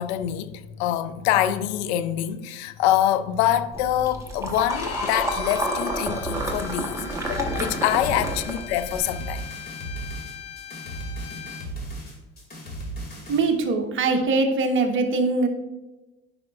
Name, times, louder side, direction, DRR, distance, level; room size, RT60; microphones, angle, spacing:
voice 1, 0.0-9.5, left 12 dB, 90° left, 0.5 m, -25 dB
sound 1, 3.7-9.0, right 1 dB, 10° right, 1.2 m, -30 dB
Bowed string instrument, 4.7-11.7, left 10 dB, 55° left, 0.7 m, -40 dB
sound 2, 6.2-13.5, right 1 dB, 30° left, 2.2 m, -36 dB
voice 2, 13.3-15.5, right 3 dB, 40° right, 1.1 m, -22 dB
9.7 x 5.2 x 2.4 m
supercardioid pair, 95°, 32 cm